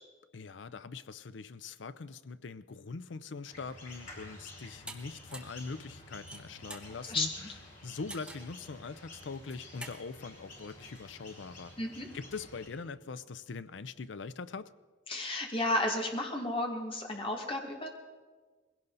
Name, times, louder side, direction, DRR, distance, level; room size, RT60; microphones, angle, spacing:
voice 1, 0.3-7.3 7.8-11.7 12.1-14.7, left 4 dB, 85° left, 0.6 m, -42 dB
sound 1, 3.4-12.7, left 1 dB, 45° left, 4.8 m, -51 dB
sound 2, 4.9-5.0 5.3-5.6 6.1-6.9 8.1-8.5 9.3-10.0, right 2 dB, 5° right, 1.3 m, -45 dB
voice 2, 7.1-7.5 11.8-12.1 15.1-17.9, left 1 dB, 30° left, 2.2 m, -33 dB
21.5 x 16.5 x 4.1 m
head